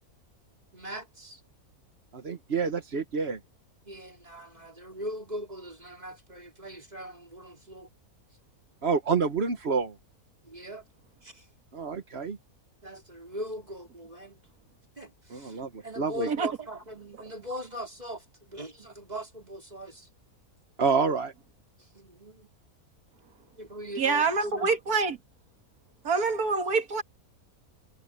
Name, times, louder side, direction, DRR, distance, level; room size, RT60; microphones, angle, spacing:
voice 1, 0.7-1.4 3.8-7.9 10.4-10.8 11.2-11.5 12.8-14.4 15.0-20.1 21.9-22.5 23.6-24.6, equal, 25° right, 4.9 m, -40 dB
voice 2, 2.1-3.4 8.8-9.9 11.7-12.4 15.3-16.3 20.8-21.3, right 5 dB, 45° right, 1.5 m, -28 dB
voice 3, 24.0-25.2 26.0-27.0, right 4 dB, 90° right, 2.2 m, -26 dB
omnidirectional pair, 1.5 m